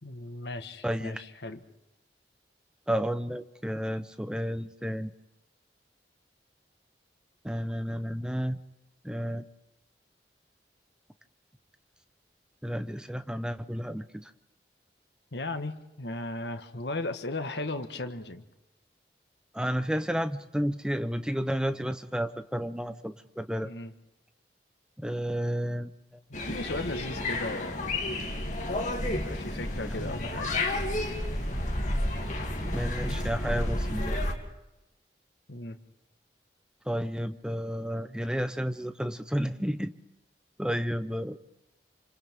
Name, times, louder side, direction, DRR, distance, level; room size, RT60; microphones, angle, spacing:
voice 1, 0.0-1.6 15.3-18.4 23.6-23.9 26.3-28.0 29.2-30.6 35.5-35.8, left 2 dB, 80° left, 7 dB, 1.5 m, -36 dB
voice 2, 0.8-1.2 2.9-5.1 7.4-8.6 9.0-9.4 12.6-14.0 19.5-23.7 25.0-25.9 32.7-34.2 36.9-39.9 40.6-41.4, equal, 5° right, 11 dB, 0.8 m, -31 dB
sound 1, 26.3-34.3, left 1 dB, 45° left, 2.7 m, -31 dB
28.5 x 26.5 x 3.7 m, 0.92 s
head